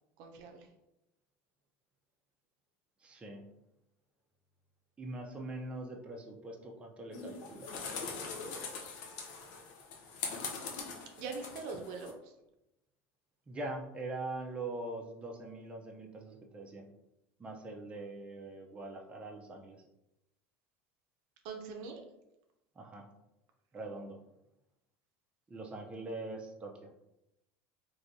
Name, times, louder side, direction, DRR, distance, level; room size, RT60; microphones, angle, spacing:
voice 1, 0.2-0.7 11.2-12.3 21.4-22.0, right 4 dB, 70° right, 3 dB, 0.5 m, -42 dB
voice 2, 3.0-3.5 5.0-8.0 13.5-16.9 17.4-19.8 22.8-23.0 23.7-24.2 25.5-26.9, right 2 dB, 15° right, 0 dB, 0.5 m, -43 dB
sound 1, 7.1-12.1, left 5 dB, 70° left, 0.6 m, -42 dB
3.2 x 2.6 x 2.6 m, 0.87 s
supercardioid pair, 120°, 7 cm